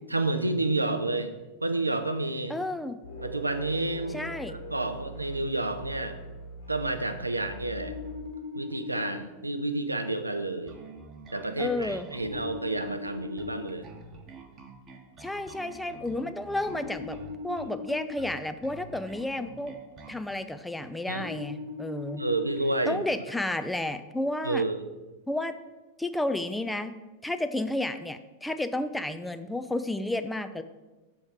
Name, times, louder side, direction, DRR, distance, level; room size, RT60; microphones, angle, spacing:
voice 1, 0.1-1.3 1.6-2.6 3.2-6.2 6.7-8.0 8.5-10.8 11.3-13.9 21.1-21.3 22.2-23.0 24.4-24.9, right 2 dB, 85° right, 9 dB, 0.4 m, -30 dB
voice 2, 2.5-3.0 4.1-4.6 11.6-12.1 15.2-17.2 17.4-19.7 20.1-22.2 22.9-24.6 25.3-25.5 26.0-26.9 27.2-30.6, left 1 dB, 5° left, 9 dB, 0.3 m, -31 dB
sound 1, 3.0-8.5, right 1 dB, 70° left, 1.9 m, -42 dB
sound 2, 7.8-9.1 12.2-13.6 16.7-18.1 21.2-22.6, left 4 dB, 55° right, 1.1 m, -39 dB
Bass guitar, 10.7-20.2, right 2 dB, 30° right, 0.8 m, -47 dB
6.3 x 3.6 x 4.5 m, 1.2 s
figure-of-eight pair, 90°, 0 cm